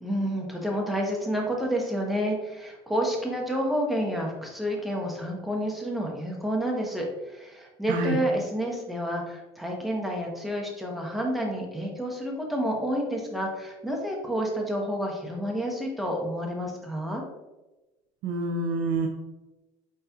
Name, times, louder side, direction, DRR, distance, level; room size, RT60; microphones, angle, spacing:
voice 1, 0.0-17.2, equal, ahead, -1 dB, 0.9 m, -29 dB
voice 2, 7.9-8.2 18.2-19.1, right 2 dB, 75° right, 1 dB, 0.6 m, -27 dB
4.8 x 4.2 x 2.3 m, 1.1 s
cardioid pair, 130°, 12 cm